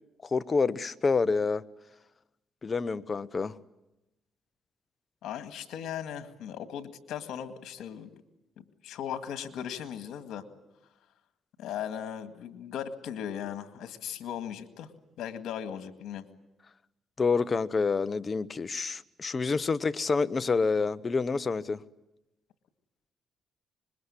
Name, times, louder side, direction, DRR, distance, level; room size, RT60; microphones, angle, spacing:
voice 1, 0.3-1.6 2.6-3.5 17.2-21.8, left 4 dB, 35° left, 0.9 m, -28 dB
voice 2, 5.2-8.1 8.6-10.4 11.6-14.9 15.2-16.2, left 9 dB, 80° left, 2.0 m, -38 dB
26.0 x 22.0 x 9.9 m
cardioid pair, 90°, 0 cm